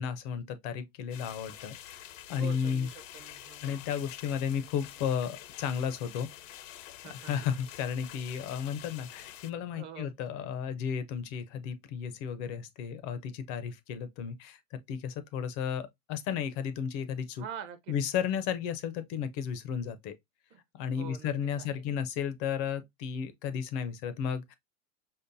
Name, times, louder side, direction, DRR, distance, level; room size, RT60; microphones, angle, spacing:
voice 1, 0.0-2.9 3.6-6.3 7.0-17.4 17.9-20.2 20.7-24.5, left 8 dB, 30° left, 0.4 m, -33 dB
sound 1, 1.1-9.5, left 12 dB, 80° left, 0.6 m, -48 dB
voice 2, 2.4-3.7 7.0-7.3 9.7-10.1 17.4-17.9 20.5-20.6 21.0-21.3 21.6-22.0, right 8 dB, 30° right, 0.6 m, -45 dB
5.3 x 2.1 x 2.5 m
supercardioid pair, 145°, 38 cm